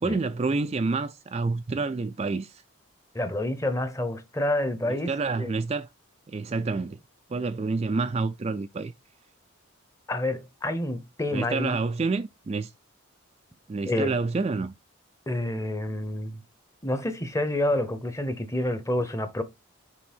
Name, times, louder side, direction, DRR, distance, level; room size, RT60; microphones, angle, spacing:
voice 1, 0.0-2.6 4.9-5.9 6.3-7.0 7.3-8.9 11.3-12.7 13.7-14.7, right 3 dB, 30° right, 0.3 m, -28 dB
voice 2, 3.1-5.1 5.4-5.5 10.1-11.8 13.9-14.1 15.3-16.4 16.8-19.4, left 1 dB, 15° left, 0.8 m, -28 dB
6.0 x 4.0 x 4.3 m
head